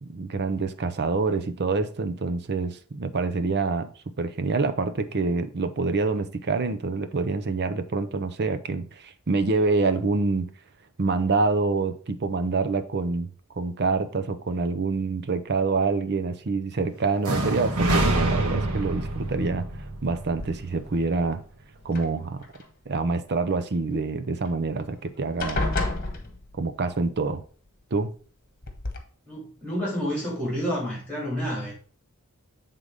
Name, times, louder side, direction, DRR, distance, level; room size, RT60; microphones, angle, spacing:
voice 1, 0.0-3.9 4.2-10.5 11.0-13.3 13.6-19.7 20.0-21.4 21.8-22.4 22.9-25.6 26.5-27.4 27.9-28.1, right 3 dB, 50° right, 0.6 m, -26 dB
sound 1, 17.2-21.1, right 1 dB, 85° right, 1.4 m, -26 dB
sound 2, 20.4-21.0 21.8-22.7 24.5-24.6 24.8-25.1 25.4-26.8 28.0-28.1 28.6-29.0, left 2 dB, 40° left, 1.4 m, -30 dB
voice 2, 29.3-31.7, equal, 5° left, 3.6 m, -29 dB
7.9 x 3.8 x 5.1 m
head